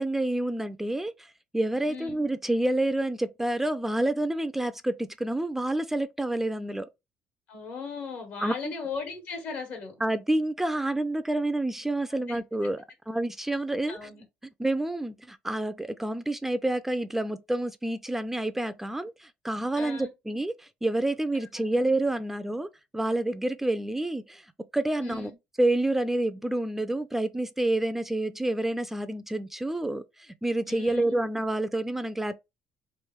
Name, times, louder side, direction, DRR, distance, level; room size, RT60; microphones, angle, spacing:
voice 1, 0.0-6.9 8.4-8.7 10.0-14.1 14.6-22.7 22.9-24.5 24.7-25.3 25.6-32.3, right 1 dB, 10° right, 0.3 m, -28 dB
voice 2, 1.8-2.2 7.5-9.9 12.3-12.4 13.9-14.2 19.7-20.1 21.6-21.7 25.0-25.3 30.7-31.0, left 4 dB, 70° left, 1.5 m, -37 dB
3.1 x 2.5 x 3.5 m
cardioid pair, 100°, 4 cm